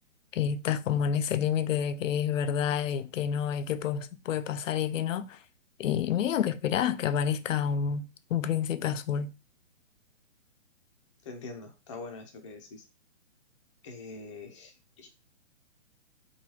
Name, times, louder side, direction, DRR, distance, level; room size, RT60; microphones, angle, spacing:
voice 1, 0.3-5.4 5.8-9.3, left 8 dB, 80° left, 0.5 m, -29 dB
voice 2, 11.2-12.8 13.8-15.1, left 3 dB, 25° left, 0.5 m, -44 dB
3.0 x 2.3 x 3.0 m
hypercardioid pair, 145°, 37 cm